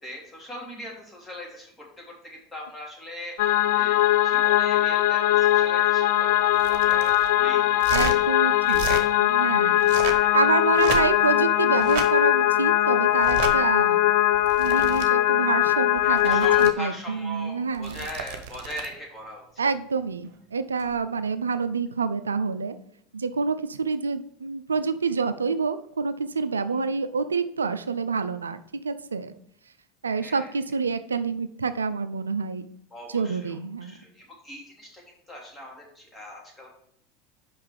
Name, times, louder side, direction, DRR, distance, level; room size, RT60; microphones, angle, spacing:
voice 1, 0.0-7.8 8.9-9.1 10.1-10.4 16.0-19.4 30.2-30.5 32.9-34.9 35.3-36.7, left 1 dB, 15° left, -2 dB, 3.0 m, -40 dB
sound 1, 3.4-16.7, left 13 dB, 65° left, 0.4 m, -21 dB
sound 2, 6.5-7.3 7.8-8.2 8.6-9.0 9.8-10.3 10.7-11.3 11.8-12.1 13.2-13.5 14.3-15.1 16.0-16.7 17.7-18.9 20.8-21.0, right 7 dB, 55° right, 1.0 m, -33 dB
voice 2, 7.9-8.8 9.2-9.8 10.3-14.2 14.6-18.0 19.6-22.8 23.1-29.3 30.0-32.7 33.1-34.0, right 5 dB, 85° right, 12 dB, 0.4 m, -27 dB
5.7 x 5.5 x 5.0 m, 0.69 s
figure-of-eight pair, 80°, 0 cm